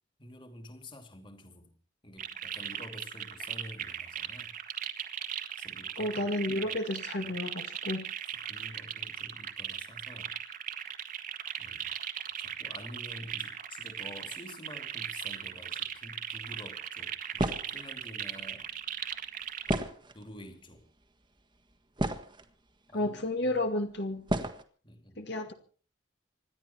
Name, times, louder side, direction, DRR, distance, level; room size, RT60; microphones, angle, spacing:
voice 1, 0.2-1.7 2.0-4.5 5.6-6.8 7.2-7.3 8.3-10.4 11.6-11.9 12.4-18.7 20.1-20.9 22.9-23.4 24.8-25.2, left 1 dB, 25° left, 6 dB, 2.7 m, -49 dB
sound 1, 2.2-19.8, right 9 dB, 45° right, 1.8 m, -38 dB
voice 2, 6.0-8.1 22.9-24.2 25.2-25.5, left 1 dB, 60° left, 5 dB, 2.1 m, -32 dB
sound 2, 17.4-17.8 19.7-20.4 21.2-21.3 21.7-22.5 23.4-23.5 24.3-24.6, right 1 dB, 25° right, 1.5 m, -32 dB
27.0 x 12.0 x 4.5 m, 0.41 s
head